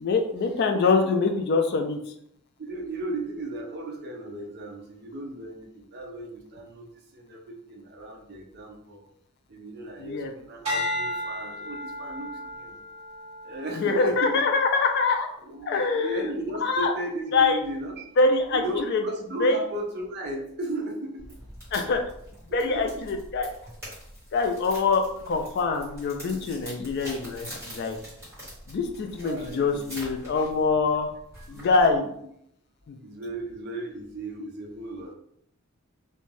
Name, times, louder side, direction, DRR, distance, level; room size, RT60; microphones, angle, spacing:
voice 1, 0.0-2.0 10.0-10.3 13.8-15.3 15.7-16.3 16.6-16.9 17.3-17.6 18.2-18.6 18.9-19.0 19.4-19.5 21.7-22.0 22.5-23.5 24.3-28.0 28.7-31.1 31.5-32.1 32.9-33.0, left 4 dB, 50° left, 5 dB, 0.3 m, -24 dB
voice 2, 2.6-9.1 9.5-12.8 13.4-14.4 15.4-18.0 18.5-21.2 22.6-22.9 29.2-29.8 31.4-32.1 33.0-35.1, right 1 dB, 50° right, 2 dB, 0.5 m, -35 dB
sound 1, 10.6-15.1 15.7-16.1, left 1 dB, 30° right, 1.4 m, -34 dB
sound 2, 21.2-32.0, equal, 15° right, 1.3 m, -44 dB
2.5 x 2.2 x 3.1 m, 0.72 s
head